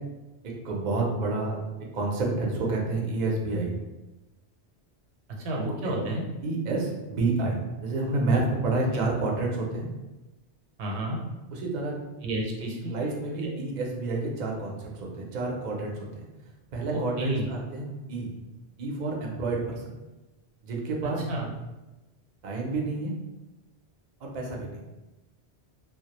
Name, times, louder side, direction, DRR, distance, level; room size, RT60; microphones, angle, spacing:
voice 1, 0.4-1.6 1.9-3.7 5.8-5.9 6.4-9.9 11.5-11.9 12.8-16.3 16.7-18.3 18.8-20.0 20.6-21.2 22.4-23.1 24.2-24.9, right 3 dB, 55° right, -1 dB, 0.5 m, -29 dB
voice 2, 5.4-6.2 8.9-9.0 10.8-11.2 12.2-12.9 13.4-13.5 16.9-17.5 21.0-21.5, right 1 dB, 80° right, -1 dB, 0.8 m, -31 dB
2.2 x 2.0 x 2.8 m, 1.1 s
omnidirectional pair, 1.1 m